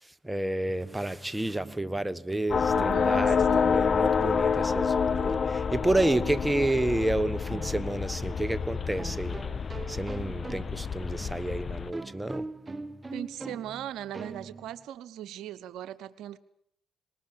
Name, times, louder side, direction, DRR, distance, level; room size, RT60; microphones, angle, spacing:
voice 1, 0.0-9.4 9.9-12.4, right 1 dB, 10° right, 1.1 m, -30 dB
sound 1, 0.7-14.9, right 3 dB, 25° right, 1.3 m, -44 dB
sound 2, 2.5-11.9, left 6 dB, 45° left, 0.8 m, -28 dB
voice 2, 2.7-3.8 13.1-16.4, right 11 dB, 80° right, 0.9 m, -39 dB
20.5 x 18.5 x 8.7 m
supercardioid pair, 60°, 0 cm